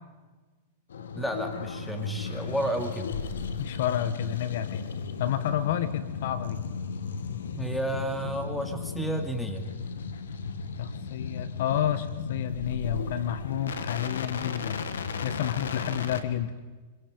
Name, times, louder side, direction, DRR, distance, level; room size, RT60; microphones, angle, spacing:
sound 1, 0.9-16.2, left 5 dB, 85° left, 1.7 m, -35 dB
voice 1, 1.1-3.1 7.5-9.7, right 1 dB, 5° left, 5 dB, 2.5 m, -31 dB
voice 2, 3.6-4.9 5.2-6.6 10.8-14.9 15.2-16.5, left 10 dB, 65° left, 13 dB, 1.2 m, -30 dB
26.0 x 23.5 x 5.2 m, 1.3 s
hypercardioid pair, 120°, 0 cm